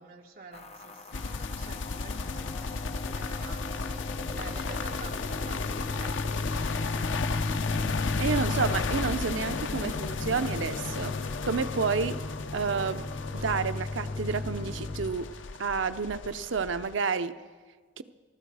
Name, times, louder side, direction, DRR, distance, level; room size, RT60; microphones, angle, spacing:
voice 1, 0.0-7.1, right 3 dB, 50° right, 1 dB, 1.9 m, -49 dB
sound 1, 0.5-15.1, left 2 dB, 35° left, 0.8 m, -39 dB
sound 2, 1.1-16.9, left 4 dB, 80° left, 0.6 m, -33 dB
voice 2, 8.2-11.1 11.4-12.2 12.5-13.1 13.3-15.3 15.6-17.3 18.0-18.1, right 5 dB, 80° right, 11 dB, 0.6 m, -30 dB
23.5 x 13.0 x 4.8 m, 1.5 s
head